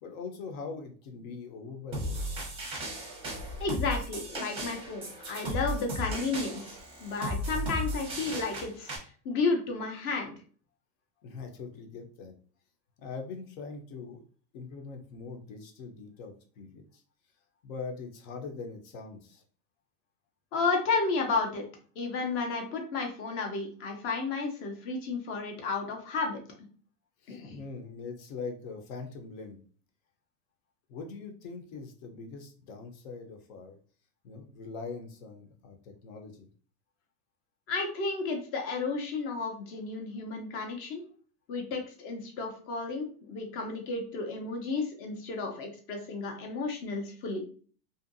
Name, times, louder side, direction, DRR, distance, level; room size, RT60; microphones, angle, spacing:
voice 1, 0.0-2.3 11.2-12.3 13.0-14.2 14.5-17.0 17.6-19.4 27.2-29.6 30.9-33.8 34.2-36.5, left 4 dB, 60° left, 5 dB, 0.8 m, -42 dB
sound 1, 1.9-9.0, equal, 10° right, 0.7 m, -35 dB
voice 2, 3.6-8.9 9.2-10.3 20.5-21.6 22.0-26.4 27.3-27.6 37.7-41.0 41.5-47.4, left 4 dB, 30° left, 3 dB, 0.6 m, -32 dB
2.7 x 2.5 x 2.5 m, 0.42 s
supercardioid pair, 140°, 48 cm